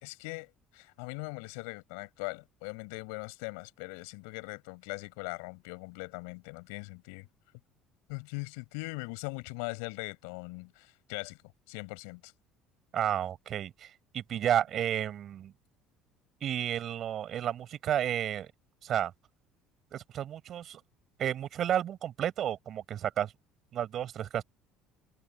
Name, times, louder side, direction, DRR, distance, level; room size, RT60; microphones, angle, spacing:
voice 1, 0.0-7.3 8.1-11.4 11.7-12.3, left 31 dB, 90° left, 5.9 m, -40 dB
voice 2, 12.9-15.5 16.4-18.5 18.8-19.1 19.9-20.8 21.2-23.3 23.7-24.4, right 10 dB, 50° right, 5.9 m, -32 dB
supercardioid pair, 105°, 0 cm